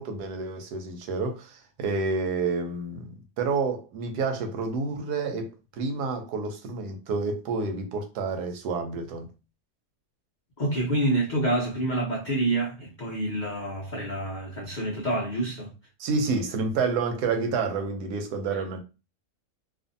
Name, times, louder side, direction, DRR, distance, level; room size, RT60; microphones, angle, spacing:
voice 1, 0.0-9.3 16.0-18.8, right 4 dB, 90° right, 1.2 m, -29 dB
voice 2, 10.6-15.7, right 1 dB, 80° left, 0.4 m, -27 dB
2.5 x 2.5 x 2.6 m
omnidirectional pair, 1.7 m